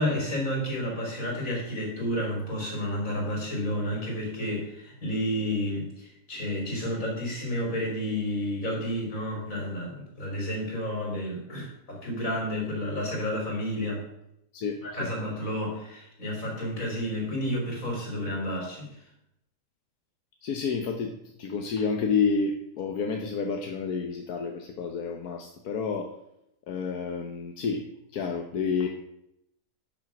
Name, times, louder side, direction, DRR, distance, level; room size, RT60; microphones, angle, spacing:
voice 1, 0.0-14.1 14.8-19.1, equal, 65° left, -1 dB, 4.1 m, -31 dB
voice 2, 14.5-15.1 20.4-26.1 26.7-27.9 28.1-28.9, left 5 dB, 90° left, 3 dB, 1.4 m, -29 dB
11.0 x 6.5 x 5.9 m, 0.81 s
omnidirectional pair, 1.5 m